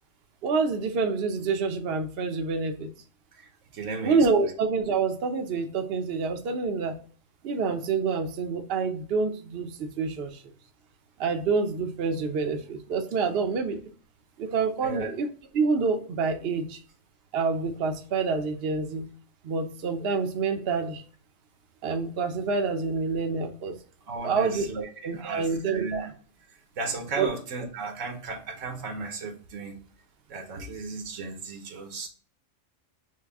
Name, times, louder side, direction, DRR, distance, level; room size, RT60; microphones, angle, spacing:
voice 1, 0.4-2.9 4.0-7.0 7.4-10.4 11.2-13.8 14.4-15.3 15.5-16.8 17.3-19.1 19.4-21.0 21.8-23.8 24.2-26.1 27.2-27.3, right 4 dB, 55° right, 0.8 m, -27 dB
voice 2, 3.4-4.2 14.8-15.1 24.1-26.1 26.8-29.8 30.3-32.1, right 3 dB, 75° right, 1.3 m, -35 dB
6.3 x 2.2 x 3.4 m
omnidirectional pair, 1.3 m